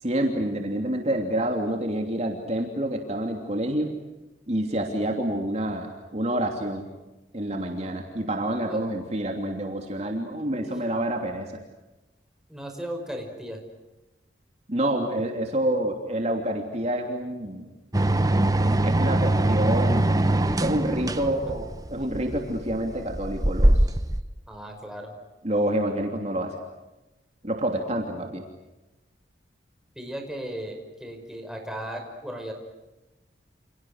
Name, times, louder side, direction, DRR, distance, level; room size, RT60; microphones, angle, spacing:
voice 1, 0.0-3.9 4.5-6.8 7.3-11.6 14.7-17.7 18.8-20.3 20.6-24.0 25.4-26.6 27.4-28.4, right 1 dB, 35° right, 2 dB, 3.0 m, -28 dB
voice 2, 12.5-13.6 21.2-21.4 24.5-25.1 30.0-32.5, equal, 5° right, 2 dB, 5.3 m, -36 dB
sound 1, 17.9-24.2, right 1 dB, 20° right, 1.0 m, -22 dB
29.5 x 29.0 x 6.5 m, 1.1 s
head